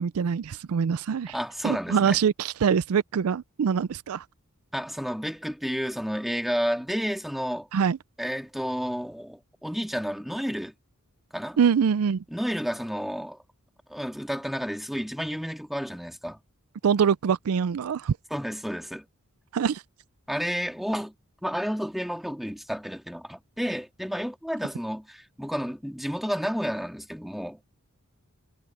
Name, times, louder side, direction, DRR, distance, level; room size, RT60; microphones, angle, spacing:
voice 1, 0.0-1.3 1.6-4.2 7.7-8.0 11.6-12.2 16.8-18.2 19.5-19.8, right 7 dB, 75° right, 0.4 m, -24 dB
voice 2, 1.3-2.2 4.7-7.7 8.2-10.7 11.3-11.6 12.3-13.4 13.9-16.4 18.3-19.1 20.3-21.1 21.4-27.6, equal, ahead, 2.7 m, -31 dB
head